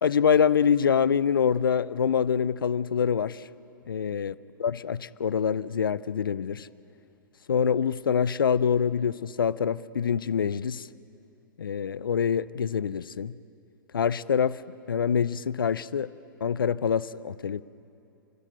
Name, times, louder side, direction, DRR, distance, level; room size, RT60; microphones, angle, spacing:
voice 1, 0.0-3.4 3.9-4.3 4.6-6.7 7.5-10.9 11.6-13.3 13.9-14.6 14.9-16.1 16.4-17.6, left 7 dB, 80° left, 18 dB, 0.5 m, -25 dB
29.5 x 13.5 x 9.1 m, 2.7 s
figure-of-eight pair, 110°, 11 cm